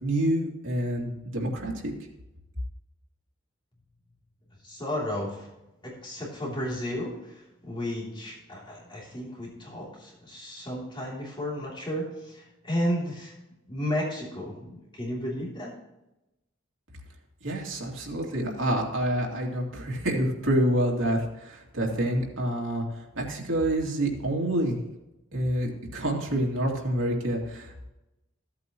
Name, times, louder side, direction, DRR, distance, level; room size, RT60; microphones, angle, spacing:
voice 1, 0.0-1.9 17.4-24.8 25.3-27.9, right 1 dB, 80° right, -2 dB, 2.8 m, -27 dB
voice 2, 4.6-5.5 5.8-7.4 7.6-13.3 13.7-15.7, equal, 25° left, -4 dB, 3.2 m, -33 dB
15.0 x 8.5 x 3.1 m, 0.92 s
head